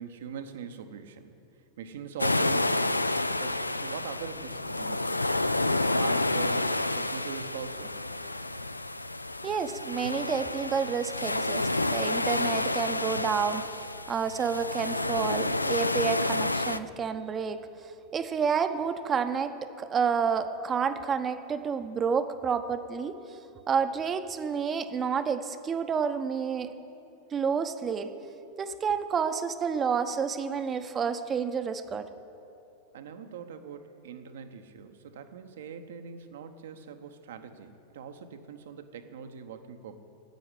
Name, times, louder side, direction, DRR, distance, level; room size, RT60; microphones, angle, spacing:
voice 1, 0.0-1.3 1.8-5.2 5.9-8.0 32.9-40.0, right 7 dB, 60° right, 8 dB, 0.9 m, -42 dB
sound 1, 2.2-16.8, left 2 dB, 85° left, 0.3 m, -29 dB
voice 2, 9.4-13.6 14.1-23.4 23.7-26.7 27.3-28.1 28.6-32.1, right 6 dB, 25° right, 10 dB, 0.7 m, -29 dB
10.5 x 8.8 x 10.0 m, 2.7 s
figure-of-eight pair, 90°, 0 cm